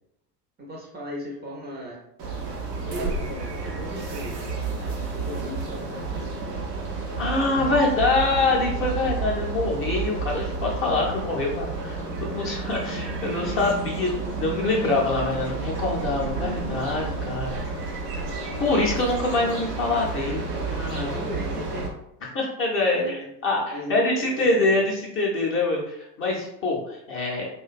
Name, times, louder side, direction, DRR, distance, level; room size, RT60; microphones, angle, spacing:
voice 1, 0.6-2.0 2.8-6.3 10.9-11.4 20.9-21.9 22.9-23.3 23.7-24.9, equal, 20° right, -3 dB, 0.5 m, -37 dB
sound 1, 2.2-21.9, right 3 dB, 85° right, 0.6 m, -31 dB
voice 2, 7.2-17.6 18.6-20.4 20.7-21.2 22.3-27.5, left 2 dB, 30° left, -2 dB, 0.6 m, -25 dB
2.4 x 2.2 x 2.3 m, 0.78 s
figure-of-eight pair, 65°, 47 cm